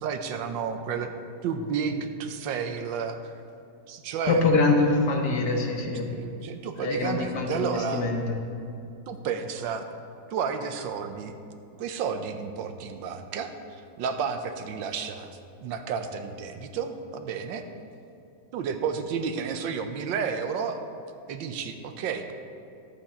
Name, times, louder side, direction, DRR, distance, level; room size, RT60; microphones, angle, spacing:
voice 1, 0.0-1.1 1.4-3.2 3.9-4.5 6.1-8.1 9.1-9.9 10.3-11.3 11.8-13.5 14.0-15.3 15.6-17.6 18.5-20.8 21.3-22.3, right 6 dB, 80° right, 7 dB, 1.4 m, -31 dB
voice 2, 4.3-6.1 6.8-8.4, left 3 dB, 60° left, 2 dB, 1.4 m, -24 dB
11.5 x 8.4 x 4.3 m, 2.6 s
omnidirectional pair, 2.1 m